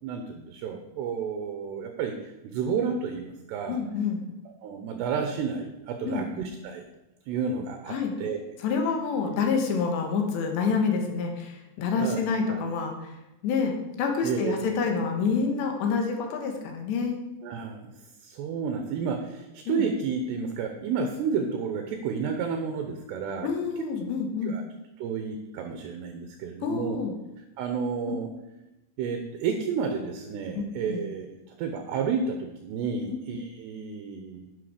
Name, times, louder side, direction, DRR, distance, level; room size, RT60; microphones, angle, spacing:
voice 1, 0.0-3.8 4.6-6.8 7.3-8.4 12.0-12.2 12.5-12.6 14.2-14.8 17.4-17.9 18.2-23.5 23.8-23.9 24.4-24.6 25.0-27.0 27.6-28.3 29.0-34.5, right 6 dB, 75° right, 5 dB, 2.8 m, -31 dB
voice 2, 3.7-4.2 6.0-6.3 7.9-8.1 8.6-13.1 13.4-17.2 19.7-19.8 23.4-24.6 26.6-27.1 28.1-28.2 30.6-30.7 30.9-31.0 33.0-33.2, left 5 dB, 75° left, 3 dB, 3.4 m, -27 dB
10.5 x 8.2 x 5.0 m, 0.98 s
omnidirectional pair, 5.3 m